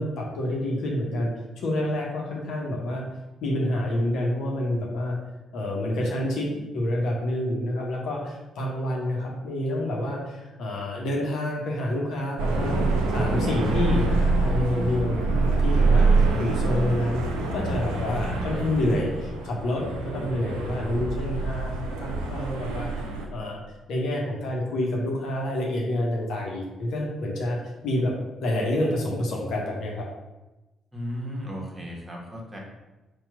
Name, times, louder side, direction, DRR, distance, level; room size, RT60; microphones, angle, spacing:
voice 1, 0.0-3.0 3.4-5.2 5.5-12.8 13.1-16.1 16.4-17.2 17.5-22.9 23.3-23.6 23.9-27.6 27.8-28.1 28.4-30.1, left 1 dB, 60° left, -2 dB, 0.9 m, -28 dB
sound 1, 12.4-23.3, right 3 dB, 75° right, 0.6 m, -25 dB
voice 2, 30.9-32.6, equal, 20° right, -2 dB, 1.3 m, -35 dB
4.4 x 2.3 x 4.7 m, 1.1 s
figure-of-eight pair, 40°, 0 cm